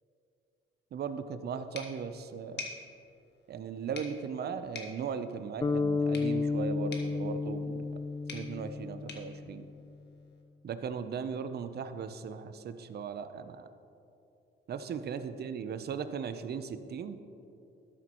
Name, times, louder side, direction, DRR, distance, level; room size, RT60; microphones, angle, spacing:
voice 1, 0.9-2.7 3.5-7.9 8.3-9.7 10.6-13.7 14.7-17.2, right 6 dB, 55° right, 10 dB, 0.6 m, -38 dB
sound 1, 1.7-10.4, left 4 dB, 60° left, 1.5 m, -49 dB
sound 2, 5.6-9.9, left 4 dB, 20° left, 0.4 m, -32 dB
13.0 x 9.4 x 3.0 m, 2.8 s
cardioid pair, 90°, 20 cm